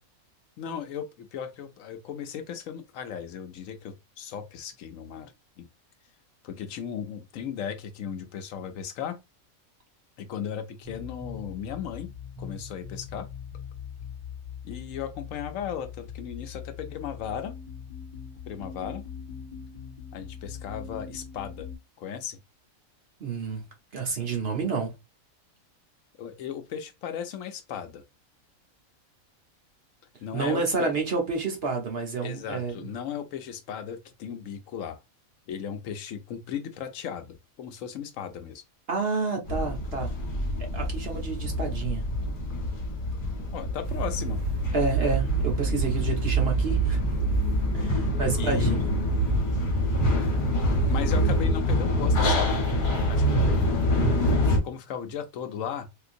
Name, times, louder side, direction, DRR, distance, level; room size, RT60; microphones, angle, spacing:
voice 1, 0.6-5.3 5.6-5.7 6.4-9.2 10.2-12.1 12.4-13.3 14.6-17.5 18.5-19.0 20.1-21.7 22.0-22.4 26.2-28.0 30.2-30.9 32.2-35.0 35.5-38.6 43.1-43.2 43.5-44.5 48.3-48.9 50.9-52.6 53.1-53.7 54.3-55.9, left 8 dB, 75° left, 0.9 m, -36 dB
sound 1, 10.8-21.8, left 7 dB, 10° right, 2.1 m, -41 dB
voice 2, 23.2-23.6 23.9-24.9 30.3-32.9 38.9-40.1 40.7-42.0 44.7-47.0 47.7-48.8, right 4 dB, 50° right, 1.0 m, -29 dB
sound 2, 39.5-54.6, left 1 dB, 40° left, 1.1 m, -26 dB
sound 3, 43.8-51.4, right 6 dB, 70° right, 1.1 m, -29 dB
3.7 x 2.5 x 2.5 m
omnidirectional pair, 1.5 m